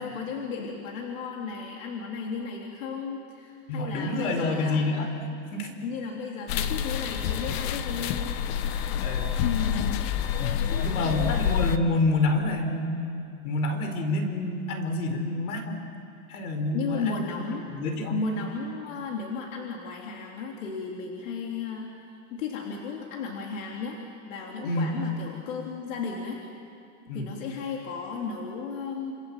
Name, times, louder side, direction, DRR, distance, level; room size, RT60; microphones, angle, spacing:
voice 1, 0.0-4.8 5.8-8.3 9.7-10.2 10.6-11.3 16.7-17.6 18.1-21.9 22.3-24.0 24.2-26.4 27.1-29.1, left 4 dB, 65° left, 0 dB, 3.4 m, -34 dB
voice 2, 3.7-5.1 5.5-5.7 9.0-9.3 10.7-13.0 13.4-15.8 16.3-17.4 17.7-18.2 24.6-24.9 27.1-27.3, left 2 dB, 80° left, 6 dB, 4.9 m, -27 dB
sound 1, 6.5-11.8, left 8 dB, 45° left, 1.3 m, -27 dB
29.0 x 27.5 x 7.6 m, 2.5 s
supercardioid pair, 160°, 42 cm